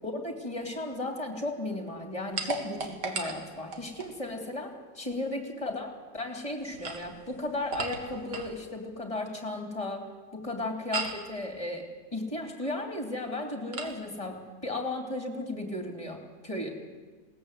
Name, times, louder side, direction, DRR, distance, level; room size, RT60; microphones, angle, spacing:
voice 1, 0.0-16.7, left 2 dB, 20° left, 4 dB, 3.0 m, -35 dB
sound 1, 2.4-4.2 6.6-8.6 10.9-11.3 13.7-14.0, right 4 dB, 65° right, 2.4 m, -36 dB
21.0 x 18.5 x 8.0 m, 1.4 s
omnidirectional pair, 1.9 m